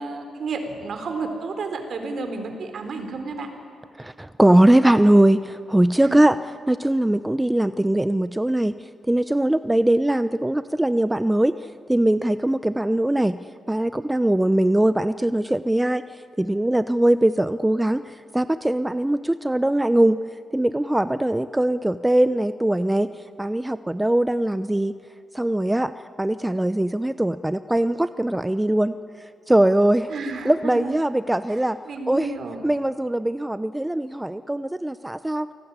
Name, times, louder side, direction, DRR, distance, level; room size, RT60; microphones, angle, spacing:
voice 1, 0.0-3.5 6.0-6.2 30.1-31.0 31.5-32.7, right 4 dB, 65° right, 6 dB, 4.1 m, -32 dB
voice 2, 4.0-6.4 6.7-8.7 9.1-11.6 11.9-13.4 13.7-16.0 16.4-20.2 20.5-23.1 23.4-25.0 25.3-25.9 26.2-28.9 29.5-30.1 30.4-31.8 32.1-32.4 32.6-35.5, right 1 dB, 10° right, 13 dB, 0.8 m, -21 dB
29.0 x 18.5 x 9.9 m, 2.6 s
supercardioid pair, 55°, 0 cm